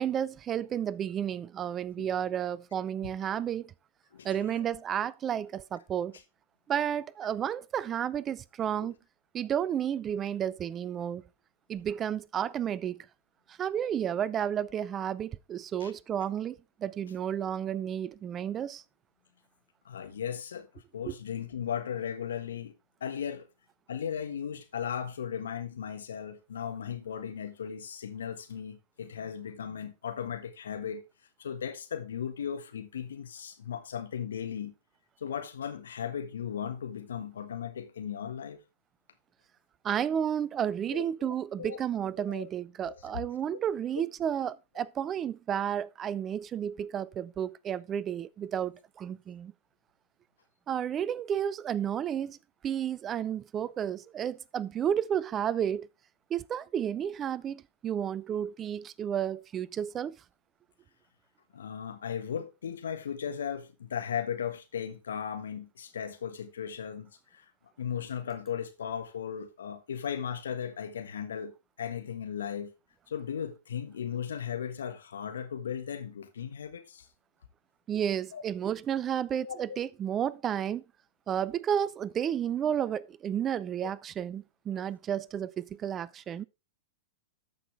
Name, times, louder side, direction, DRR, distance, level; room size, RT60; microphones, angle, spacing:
voice 1, 0.0-3.7 4.2-6.2 6.7-9.0 9.3-11.2 11.7-13.1 13.5-18.8 21.1-21.2 39.8-49.5 50.7-52.4 52.6-55.9 56.3-60.2 77.9-80.8 81.3-86.4, right 9 dB, 25° right, 0.4 m, -32 dB
voice 2, 4.1-4.6 8.8-8.9 15.8-15.9 19.8-22.7 23.0-23.5 23.9-31.0 31.4-34.7 35.2-38.6 40.9-41.8 42.3-42.5 42.9-43.2 61.5-67.5 67.8-71.5 71.8-72.7 73.1-77.1 78.3-78.4 79.4-79.8 83.8-83.9, left 8 dB, 75° left, 1.4 m, -37 dB
13.5 x 5.6 x 3.4 m
hypercardioid pair, 105°, 0 cm